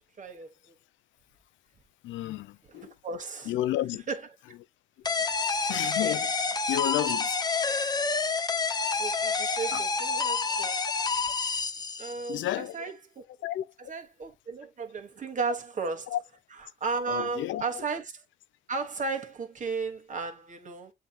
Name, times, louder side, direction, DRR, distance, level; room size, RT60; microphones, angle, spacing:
voice 1, 0.2-0.5 3.0-3.5 4.1-4.2 9.0-10.8 12.0-13.3 13.9-16.1 16.8-18.0 18.7-20.9, right 4 dB, 40° right, 1.2 m, -34 dB
voice 2, 2.0-2.9 3.5-4.1 5.7-7.4 7.7-7.8 9.7-9.8 11.5-11.6 12.3-12.8 13.4-13.7 15.5-15.6 16.1-16.2 17.1-17.8, left 13 dB, 75° left, 0.4 m, -32 dB
sound 1, 5.1-12.4, left 4 dB, 20° left, 0.5 m, -28 dB
7.9 x 2.9 x 2.2 m
cardioid pair, 90°, 20 cm